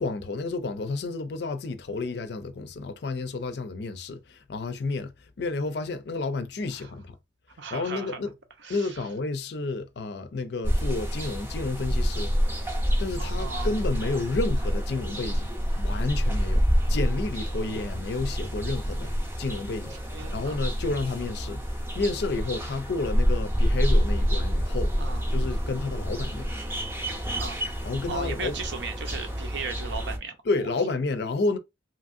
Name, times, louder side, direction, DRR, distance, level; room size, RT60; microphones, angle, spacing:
voice 1, 0.0-7.2 7.7-8.3 8.7-12.3 13.0-15.5 15.8-19.1 19.4-21.6 21.9-24.9 25.3-26.5 27.8-28.5 30.5-31.6, left 3 dB, 60° left, 0.4 m, -31 dB
voice 2, 7.6-8.2 8.6-9.0 13.2-13.7 20.1-20.6 25.0-25.2 27.4-27.6 28.1-30.7, right 4 dB, 70° right, 0.6 m, -37 dB
garden ambience, 10.6-30.2, equal, 10° right, 0.6 m, -27 dB
2.9 x 2.5 x 2.5 m
head